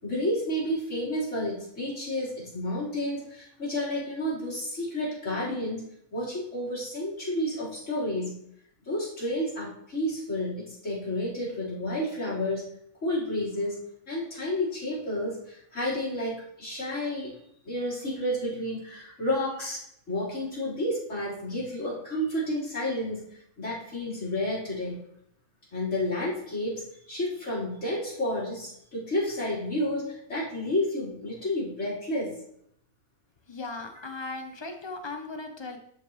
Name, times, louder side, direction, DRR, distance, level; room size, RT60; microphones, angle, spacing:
voice 1, 0.0-5.8 6.1-8.4 8.8-12.6 13.0-13.8 14.1-17.3 17.6-19.8 20.1-23.2 23.6-24.9 25.7-32.3, left 1 dB, 55° left, -9 dB, 4.5 m, -30 dB
voice 2, 33.5-35.8, left 3 dB, 25° left, 5 dB, 0.7 m, -37 dB
12.0 x 5.8 x 3.1 m, 0.72 s
omnidirectional pair, 1.5 m